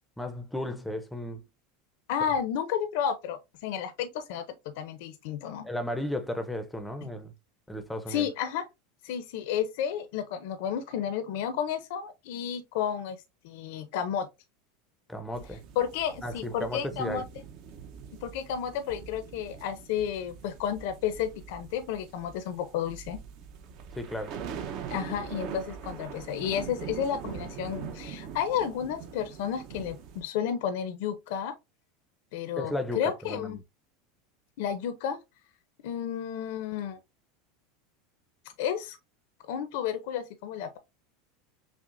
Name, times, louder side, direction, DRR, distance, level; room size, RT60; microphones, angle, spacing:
voice 1, 0.2-1.4 5.6-7.3 7.7-8.3 15.1-15.6 16.2-17.2 24.0-24.4 32.6-33.6, left 1 dB, 5° left, 0.5 m, -34 dB
voice 2, 2.1-4.4 4.8-5.7 8.1-8.7 9.0-13.2 13.4-14.3 15.8-17.2 18.2-23.2 24.9-31.5 32.3-33.6 34.6-35.2 35.8-37.0 38.6-39.0 39.5-40.8, left 8 dB, 70° left, 0.5 m, -32 dB
sound 1, 15.3-30.2, right 7 dB, 50° right, 0.7 m, -42 dB
5.8 x 2.1 x 2.5 m
supercardioid pair, 135°, 0 cm